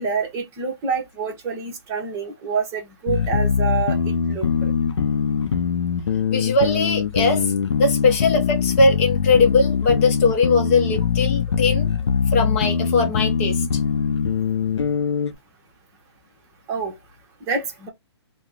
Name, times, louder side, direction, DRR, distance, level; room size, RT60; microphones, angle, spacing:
voice 1, 0.0-4.7 16.7-16.9 17.5-17.9, right 5 dB, 20° right, 1.0 m, -27 dB
sound 1, 3.1-15.3, left 6 dB, 85° left, 0.6 m, -22 dB
voice 2, 6.3-7.5 7.8-11.9 12.3-13.7, left 3 dB, 30° left, 0.8 m, -20 dB
2.9 x 2.2 x 3.6 m
hypercardioid pair, 150°, 14 cm